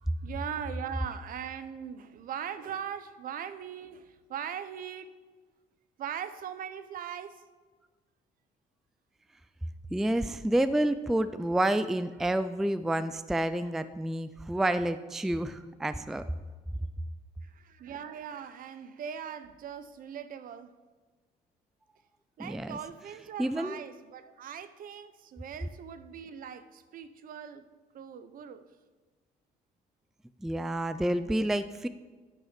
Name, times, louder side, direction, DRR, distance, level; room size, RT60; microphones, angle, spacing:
voice 1, 0.0-5.1 6.0-7.4 17.4-20.7 22.4-27.7 27.9-28.7, right 8 dB, 55° right, 0.8 m, -40 dB
voice 2, 9.9-16.2 22.4-22.8 23.4-23.8 30.4-31.9, right 1 dB, ahead, 0.3 m, -29 dB
12.0 x 5.4 x 5.8 m
cardioid pair, 110°, 17 cm